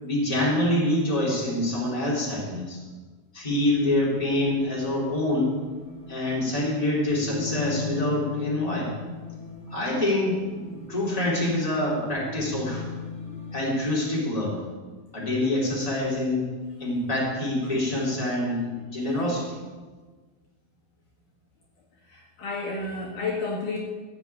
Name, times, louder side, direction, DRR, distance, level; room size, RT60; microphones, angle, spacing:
voice 1, 0.0-2.8 3.3-5.6 6.1-8.9 9.7-12.8 13.5-14.6 15.1-16.5 16.8-19.6, left 1 dB, 10° left, -5 dB, 3.8 m, -26 dB
sound 1, 3.4-13.9, left 5 dB, 10° right, 4.5 m, -39 dB
voice 2, 22.1-23.8, left 3 dB, 60° left, -3 dB, 3.3 m, -31 dB
15.5 x 7.2 x 8.6 m, 1.4 s
omnidirectional pair, 4.4 m